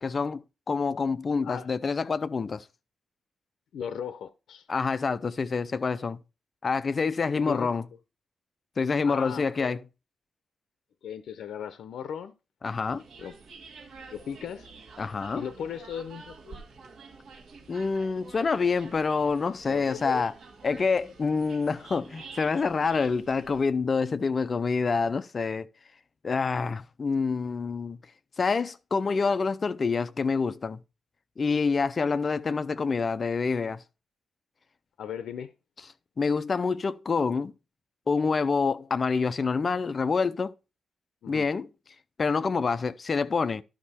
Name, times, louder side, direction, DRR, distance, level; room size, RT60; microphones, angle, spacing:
voice 1, 0.0-2.6 4.7-6.2 6.6-7.8 8.8-9.8 12.6-13.0 15.0-15.4 17.7-20.3 20.6-25.7 26.2-28.0 28.4-30.8 31.4-33.8 36.2-37.5 38.1-40.5 41.3-41.7 42.2-43.6, left 4 dB, 35° left, 0.5 m, -27 dB
voice 2, 3.7-4.7 7.3-7.7 9.0-9.8 11.0-12.3 13.2-13.3 14.1-14.7 15.3-16.6 19.7-20.2 35.0-35.5 41.2-41.5, left 8 dB, 80° left, 0.6 m, -37 dB
sound 1, 12.8-23.6, right 4 dB, 55° right, 2.2 m, -48 dB
11.5 x 5.4 x 4.2 m
wide cardioid pair, 140°, 0 cm